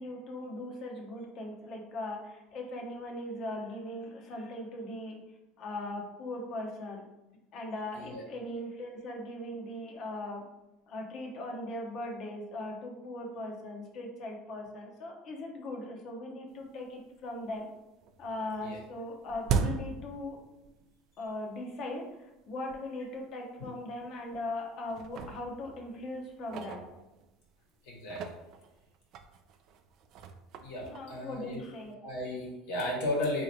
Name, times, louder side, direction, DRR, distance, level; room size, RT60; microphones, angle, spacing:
voice 1, 0.0-5.2 5.6-7.1 7.5-10.4 10.9-17.7 18.2-20.4 21.2-22.0 22.5-26.8 30.9-31.9, left 1 dB, 50° left, 1 dB, 0.9 m, -39 dB
Lednice-Dvere-cut, 16.7-16.8 17.2-17.8 18.0-20.9 21.2-21.3 22.1-22.2 22.7-22.8 23.1-23.3 24.0-24.5 24.9-27.5 27.9-31.9, right 5 dB, 50° right, 0.4 m, -38 dB
voice 2, 27.9-28.2 30.6-31.6 32.0-33.4, left 1 dB, 75° left, -2 dB, 1.4 m, -34 dB
4.1 x 2.8 x 2.7 m, 0.95 s
supercardioid pair, 120°, 0 cm